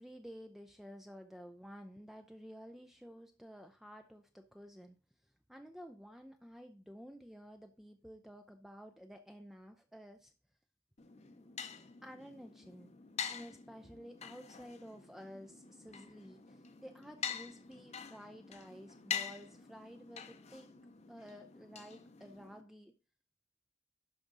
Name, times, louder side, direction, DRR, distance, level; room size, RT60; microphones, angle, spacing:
voice 1, 0.0-5.0 5.5-10.3 12.0-12.9 13.3-20.7 21.1-22.9, equal, ahead, 6 dB, 0.4 m, -52 dB
sound 1, 11.0-22.6, left 7 dB, 35° left, 0.7 m, -46 dB
11.5 x 4.9 x 3.9 m, 0.35 s
head